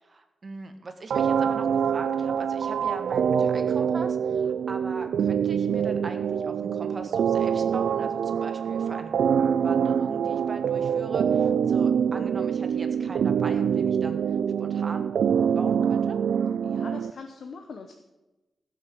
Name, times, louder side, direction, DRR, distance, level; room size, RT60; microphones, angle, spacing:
voice 1, 0.0-9.1 9.6-15.1 15.6-16.2, right 3 dB, 35° right, 6 dB, 1.6 m, -40 dB
sound 1, 1.1-17.1, right 7 dB, 90° right, 0.4 m, -25 dB
voice 2, 16.6-17.9, left 4 dB, 65° left, 5 dB, 1.0 m, -41 dB
15.5 x 6.6 x 7.8 m, 1.1 s
wide cardioid pair, 135°, 0 cm